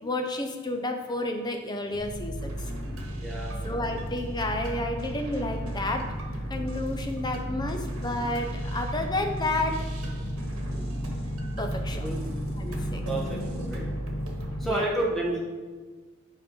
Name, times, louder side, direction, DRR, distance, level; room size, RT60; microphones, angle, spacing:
voice 1, 0.0-2.5 3.6-6.1 6.5-9.8 11.6-12.1 12.6-13.0 14.6-14.9, left 2 dB, 20° left, 4 dB, 0.7 m, -31 dB
sound 1, 1.9-14.7, equal, 50° left, 1.7 m, -33 dB
sound 2, 2.4-14.6, equal, 85° right, 1.2 m, -43 dB
voice 2, 3.2-3.8 11.9-12.2 13.1-13.9 14.6-15.4, right 1 dB, ahead, -3 dB, 1.4 m, -30 dB
7.7 x 5.2 x 4.3 m, 1.4 s
head